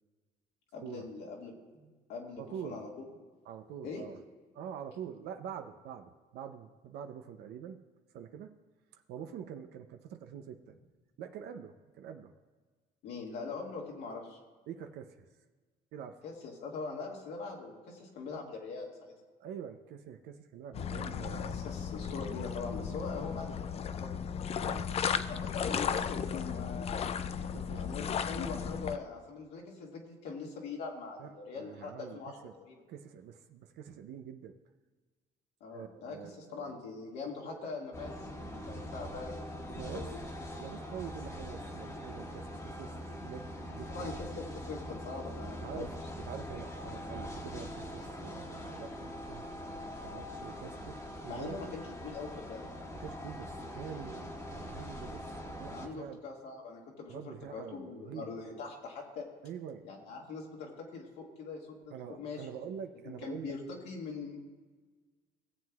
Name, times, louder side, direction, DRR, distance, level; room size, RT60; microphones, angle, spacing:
voice 1, 0.7-3.1 3.8-4.0 13.0-14.4 16.2-19.1 21.2-24.1 25.3-27.0 27.7-32.8 35.6-39.6 39.9-40.2 43.9-45.9 51.3-52.7 55.7-59.3 59.8-62.5 63.0-64.4, left 4 dB, 80° left, -1 dB, 2.0 m, -42 dB
voice 2, 2.4-2.8 3.5-4.2 4.5-7.8 8.1-8.5 8.9-10.8 11.2-12.3 14.7-15.3 15.9-16.2 19.4-21.7 24.6-25.1 27.4-28.3 31.2-32.2 32.4-32.5 32.9-34.5 35.7-36.8 37.4-37.7 39.7-40.1 40.6-42.9 43.2-44.1 45.6-49.5 50.0-51.6 53.0-56.2 57.1-58.3 59.4-59.9 61.9-63.6, right 8 dB, 75° right, 6 dB, 0.6 m, -45 dB
sound 1, 20.7-29.0, left 7 dB, 40° left, 0.4 m, -35 dB
sound 2, 37.9-55.9, equal, 20° left, 1.3 m, -43 dB
17.5 x 7.6 x 2.4 m, 1.4 s
cardioid pair, 110°, 17 cm